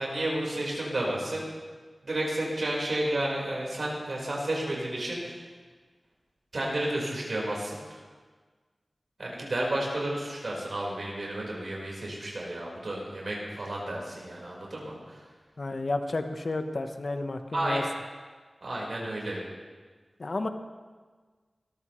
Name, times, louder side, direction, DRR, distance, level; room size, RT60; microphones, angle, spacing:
voice 1, 0.0-1.4 2.0-5.4 6.5-8.0 9.2-15.2 17.5-17.9 18.6-19.4, right 1 dB, 70° right, -3 dB, 4.7 m, -31 dB
voice 2, 15.6-17.8 20.2-20.5, left 2 dB, 60° left, 7 dB, 1.1 m, -31 dB
21.0 x 14.0 x 3.2 m, 1.4 s
wide cardioid pair, 50°, 0 cm